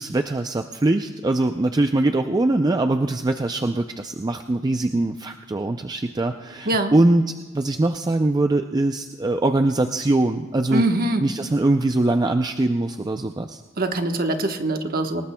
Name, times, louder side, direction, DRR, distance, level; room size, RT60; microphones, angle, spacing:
voice 1, 0.0-10.9 11.2-13.6, right 2 dB, 20° right, 6 dB, 0.4 m, -22 dB
voice 2, 10.7-11.2 13.8-15.2, right 1 dB, 50° right, 5 dB, 1.1 m, -23 dB
27.0 x 19.0 x 2.2 m, 1.3 s
head